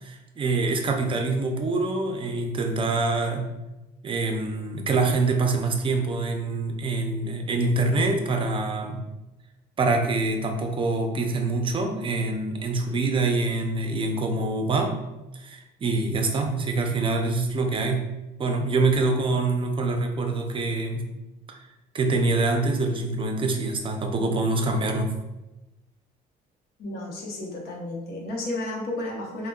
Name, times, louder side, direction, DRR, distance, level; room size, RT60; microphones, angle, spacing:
voice 1, 0.0-3.5 4.0-9.0 9.8-14.9 15.3-18.0 18.4-21.1 21.9-25.1, right 3 dB, 30° right, 4 dB, 0.5 m, -25 dB
voice 2, 26.8-29.5, left 1 dB, 65° left, -1 dB, 0.9 m, -32 dB
4.8 x 2.1 x 2.2 m, 1.0 s
cardioid pair, 110°, 17 cm